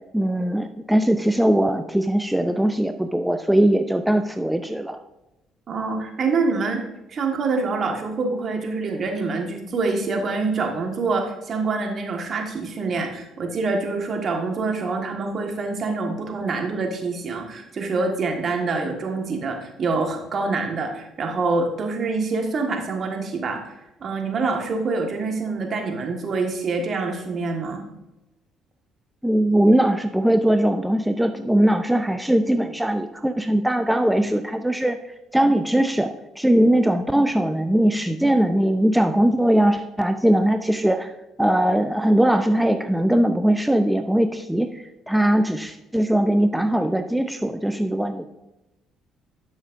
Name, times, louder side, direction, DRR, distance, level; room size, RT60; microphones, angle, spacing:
voice 1, 0.1-5.0 29.2-35.0 35.3-41.1 41.4-48.3, right 1 dB, 5° right, 8 dB, 0.5 m, -20 dB
voice 2, 5.7-6.8 7.1-27.9, right 3 dB, 50° right, 3 dB, 1.6 m, -26 dB
11.5 x 6.3 x 2.6 m, 0.95 s
hypercardioid pair, 55°, 0 cm